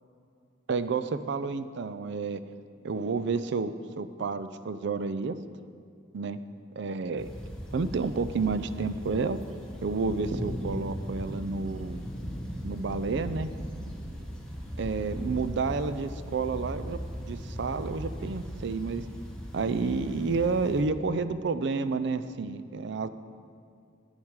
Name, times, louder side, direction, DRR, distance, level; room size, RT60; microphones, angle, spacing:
voice 1, 0.7-2.4 2.8-5.3 6.1-6.4 6.8-7.3 7.7-9.4 9.8-12.0 12.6-13.5 14.8-17.0 17.3-19.0 19.5-23.1, right 4 dB, 65° right, 12 dB, 0.4 m, -30 dB
sound 1, 7.2-20.8, equal, 5° left, 1.2 m, -38 dB
11.0 x 9.0 x 4.7 m, 2.4 s
head